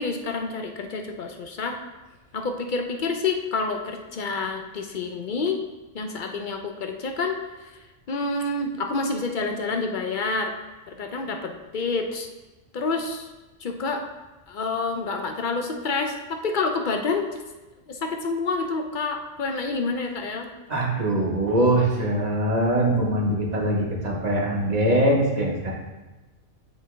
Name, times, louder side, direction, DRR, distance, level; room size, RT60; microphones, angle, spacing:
voice 1, 0.0-1.8 2.3-5.6 5.9-7.4 8.1-10.5 10.9-12.3 12.7-13.3 13.6-14.0 14.5-17.4 17.9-20.5, left 3 dB, 50° left, 4 dB, 0.6 m, -28 dB
voice 2, 20.7-25.7, right 1 dB, 35° right, -3 dB, 1.3 m, -22 dB
9.8 x 3.5 x 3.3 m, 1.1 s
omnidirectional pair, 1.3 m